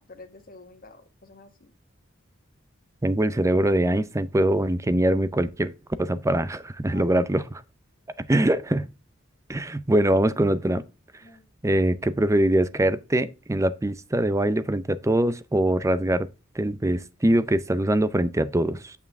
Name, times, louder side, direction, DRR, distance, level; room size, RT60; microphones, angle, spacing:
voice 1, 0.0-1.7 6.9-7.1 11.2-11.5, left 2 dB, 45° left, 1.5 m, -48 dB
voice 2, 3.0-5.7 6.0-7.6 8.2-8.9 9.5-10.8 11.6-16.3 16.6-18.9, right 1 dB, 15° right, 0.5 m, -23 dB
9.0 x 5.7 x 3.5 m
head